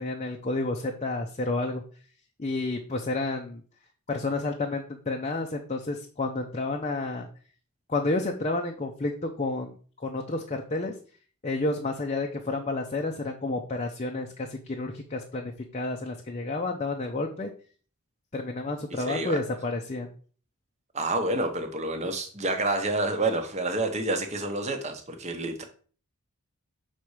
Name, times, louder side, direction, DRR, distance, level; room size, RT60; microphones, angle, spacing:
voice 1, 0.0-1.8 2.4-3.6 4.1-7.3 7.9-9.7 10.0-10.9 11.4-17.5 18.3-20.1, left 2 dB, 30° left, 2 dB, 0.6 m, -30 dB
voice 2, 18.9-19.4 20.9-25.6, right 2 dB, 30° right, 6 dB, 0.9 m, -28 dB
6.0 x 4.1 x 4.8 m, 0.41 s
head